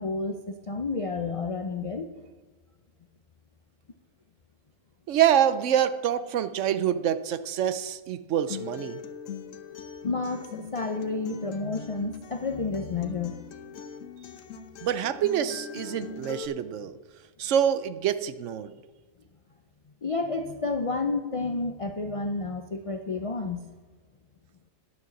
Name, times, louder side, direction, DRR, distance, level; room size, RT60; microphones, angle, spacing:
voice 1, 0.0-2.1 10.0-13.4 20.0-23.6, left 3 dB, 50° left, 6 dB, 0.4 m, -30 dB
voice 2, 5.1-9.0 14.8-17.0 17.4-18.7, right 9 dB, 70° right, 13 dB, 0.9 m, -26 dB
Acoustic guitar, 8.5-16.5, left 7 dB, 80° left, 1.2 m, -41 dB
11.0 x 6.7 x 7.0 m, 1.3 s
omnidirectional pair, 1.4 m